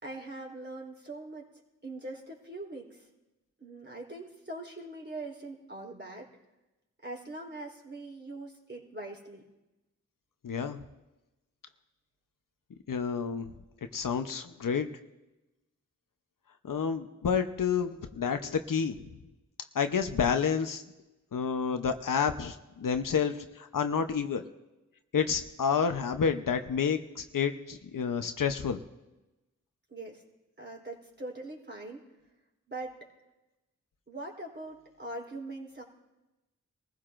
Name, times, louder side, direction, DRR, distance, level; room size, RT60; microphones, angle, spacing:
voice 1, 0.0-1.5 1.8-3.0 3.6-6.3 7.0-9.4 29.9-30.2 30.6-32.0 32.7-33.0 34.1-35.8, right 2 dB, 35° right, -1 dB, 3.7 m, -42 dB
voice 2, 10.4-10.8 12.9-13.5 13.9-14.9 16.6-19.1 19.7-20.8 21.3-24.4 25.1-28.8, left 6 dB, 85° left, 7 dB, 0.8 m, -29 dB
23.5 x 15.0 x 2.6 m, 1.0 s
cardioid pair, 45°, 32 cm